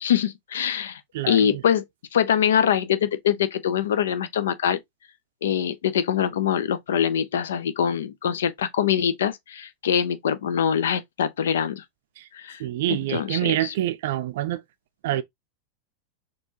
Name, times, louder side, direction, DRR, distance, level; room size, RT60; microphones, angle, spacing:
voice 1, 0.0-1.0 1.3-1.8 2.1-4.8 5.4-11.8 12.3-12.6 12.9-13.7, left 8 dB, 60° left, 0.5 m, -24 dB
voice 2, 1.1-1.6 12.6-14.6 15.0-15.2, right 14 dB, 55° right, 0.5 m, -26 dB
4.3 x 3.0 x 2.8 m
figure-of-eight pair, 90°, 0 cm